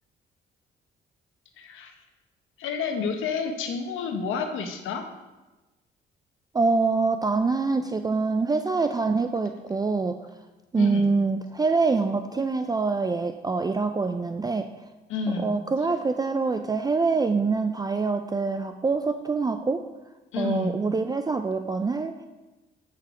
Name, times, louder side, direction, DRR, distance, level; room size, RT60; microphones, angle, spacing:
voice 1, 1.6-1.9 2.6-5.0 10.8-11.1 15.1-15.5 20.3-20.7, left 5 dB, 90° left, 5 dB, 1.1 m, -29 dB
voice 2, 6.5-10.2 10.7-14.7 15.4-19.8 20.4-22.3, right 4 dB, 20° right, 8 dB, 0.4 m, -25 dB
8.2 x 5.8 x 5.0 m, 1.1 s
cardioid pair, 90°, 20 cm